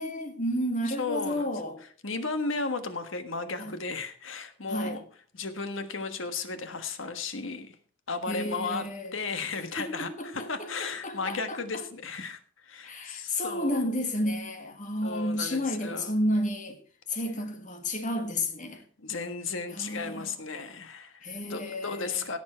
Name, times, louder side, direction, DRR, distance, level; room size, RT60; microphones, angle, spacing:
voice 1, 0.0-1.8 3.6-3.7 4.7-5.0 8.3-9.1 9.8-11.8 12.8-16.8 17.1-18.8 19.7-20.3 21.2-22.2, left 1 dB, 40° left, 1.9 m, -31 dB
voice 2, 0.9-1.5 2.0-5.0 5.3-7.8 8.1-8.8 9.1-13.9 15.0-16.1 19.0-22.4, left 4 dB, 90° left, 1.4 m, -34 dB
17.0 x 7.3 x 4.4 m
head